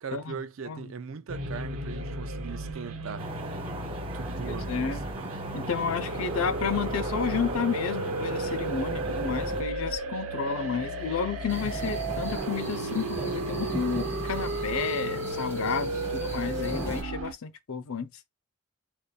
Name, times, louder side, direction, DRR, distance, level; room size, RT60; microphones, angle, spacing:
voice 1, 0.0-3.3 4.1-5.0, right 6 dB, 65° right, 0.4 m, -39 dB
sound 1, 1.3-17.3, right 2 dB, 90° right, 0.9 m, -34 dB
sound 2, 3.2-9.6, right 2 dB, 25° right, 0.6 m, -37 dB
voice 2, 4.5-5.0 5.5-18.1, left 6 dB, 80° left, 0.6 m, -31 dB
sound 3, 11.5-17.0, equal, 15° left, 2.7 m, -37 dB
6.6 x 2.5 x 2.4 m
head